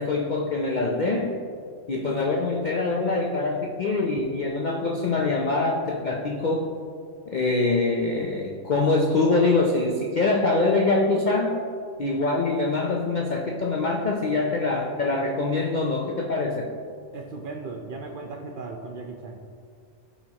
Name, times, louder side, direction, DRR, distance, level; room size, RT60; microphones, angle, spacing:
voice 1, 0.0-1.3 1.9-6.7 7.3-11.6 12.0-16.7, left 3 dB, 90° left, 1 dB, 0.4 m, -24 dB
voice 2, 17.1-19.4, right 3 dB, 70° right, 1 dB, 0.4 m, -37 dB
12.5 x 4.3 x 2.9 m, 2.3 s
omnidirectional pair, 1.5 m